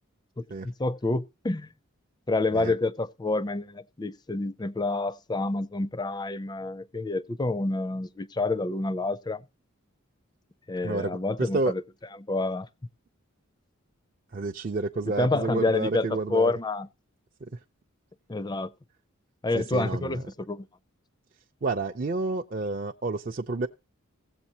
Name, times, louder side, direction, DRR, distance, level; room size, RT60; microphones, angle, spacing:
voice 1, 0.4-1.7 2.3-9.4 10.7-11.8 12.3-12.7 15.1-16.9 18.3-18.7 19.4-20.7, left 2 dB, 20° left, 0.4 m, -28 dB
voice 2, 10.8-11.7 14.3-16.5 17.4-17.6 19.5-20.2 21.6-23.7, right 3 dB, 40° right, 0.5 m, -30 dB
16.5 x 8.0 x 2.8 m
head